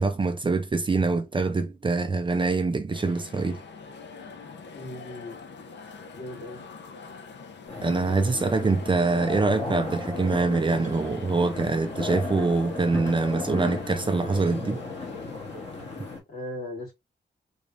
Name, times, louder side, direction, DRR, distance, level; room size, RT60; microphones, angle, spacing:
voice 1, 0.0-3.6 7.8-14.8, right 3 dB, 30° right, 0.5 m, -24 dB
sound 1, 2.9-16.2, left 5 dB, 90° left, 0.8 m, -44 dB
voice 2, 4.7-5.3 6.1-6.6 16.3-16.9, left 1 dB, 55° left, 2.7 m, -37 dB
sound 2, 7.7-16.2, left 3 dB, 35° left, 2.0 m, -35 dB
4.0 x 3.3 x 2.5 m
wide cardioid pair, 150°, 18 cm